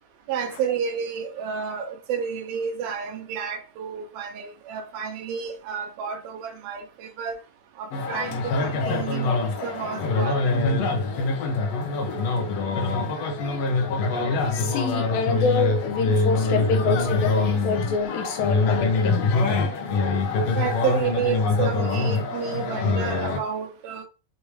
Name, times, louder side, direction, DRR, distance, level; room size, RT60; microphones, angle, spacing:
voice 1, 0.3-7.4 7.8-10.5 16.5-17.1 20.5-24.0, right 7 dB, 90° right, 3.1 m, -31 dB
sound 1, 7.9-23.4, left 3 dB, 65° left, 1.7 m, -24 dB
voice 2, 14.4-19.3, left 4 dB, 80° left, 2.9 m, -26 dB
6.9 x 2.8 x 4.9 m
omnidirectional pair, 4.1 m